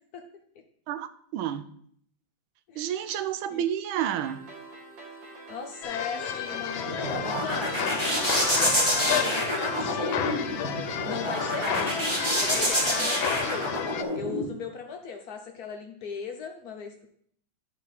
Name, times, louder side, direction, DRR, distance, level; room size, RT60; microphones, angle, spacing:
voice 1, 0.9-1.7 2.8-4.4 11.6-11.8, right 10 dB, 85° right, 11 dB, 1.4 m, -30 dB
sound 1, 4.0-12.0, right 2 dB, 60° right, 2.0 m, -46 dB
voice 2, 5.5-7.9 8.4-10.4 11.0-12.1 12.4-13.7 14.1-17.1, left 5 dB, 60° left, 3 dB, 1.1 m, -37 dB
sound 2, 5.8-14.0, left 9 dB, 80° left, 1.4 m, -32 dB
sound 3, 6.5-14.4, equal, 15° right, 1.6 m, -28 dB
11.0 x 4.5 x 4.0 m, 0.64 s
omnidirectional pair, 2.2 m